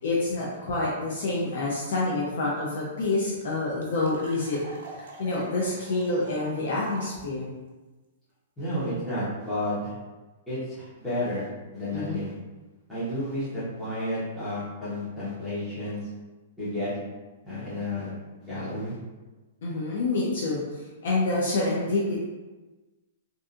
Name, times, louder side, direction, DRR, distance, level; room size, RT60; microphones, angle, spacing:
voice 1, 0.0-4.6 4.9-7.5 11.9-12.2 19.6-20.6 21.0-22.2, left 2 dB, 65° left, -5 dB, 0.5 m, -27 dB
sound 1, 2.5-2.6 2.8-2.9 3.1-7.2, right 2 dB, 85° right, 0.6 m, -45 dB
voice 2, 8.6-9.9 10.5-11.5 11.7-12.3 12.9-16.0 16.6-16.9 17.4-18.1 18.4-19.0, left 1 dB, 5° left, -13 dB, 0.9 m, -31 dB
2.6 x 2.3 x 2.4 m, 1.2 s
hypercardioid pair, 155°, 0 cm